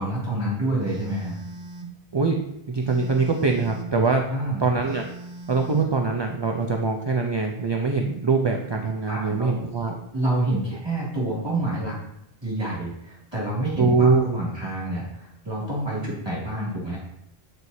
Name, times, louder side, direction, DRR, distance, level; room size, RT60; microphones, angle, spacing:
voice 1, 0.0-1.4 4.3-4.6 9.1-9.5 10.1-11.9 12.4-17.0, right 1 dB, 25° right, -7 dB, 2.3 m, -28 dB
Telephone, 0.8-2.0 2.8-4.0 4.8-6.0, right 3 dB, 80° right, 1.0 m, -39 dB
voice 2, 2.7-4.2 4.6-5.0 5.5-9.9 13.8-14.2, right 4 dB, 40° right, 2 dB, 0.4 m, -23 dB
8.0 x 4.4 x 2.7 m, 0.79 s
omnidirectional pair, 1.1 m